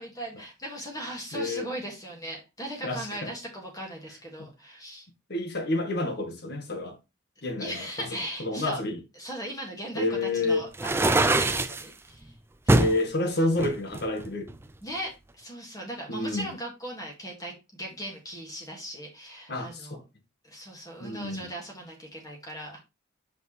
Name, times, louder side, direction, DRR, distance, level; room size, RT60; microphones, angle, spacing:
voice 1, 0.0-5.1 7.6-8.8 9.2-12.3 12.7-12.9 14.8-20.0 20.4-22.8, right 1 dB, 20° left, 2.0 m, -38 dB
voice 2, 1.3-1.7 2.8-3.3 4.4-4.5 5.3-7.0 7.4-8.1 8.4-9.0 9.9-10.7 12.7-14.5 16.1-16.5 19.5-20.0 21.0-21.5, left 2 dB, 55° left, 1.5 m, -29 dB
sound 1, 10.7-11.8 12.7-13.0 13.6-14.7, right 2 dB, 10° right, 0.4 m, -23 dB
6.1 x 5.2 x 3.2 m
head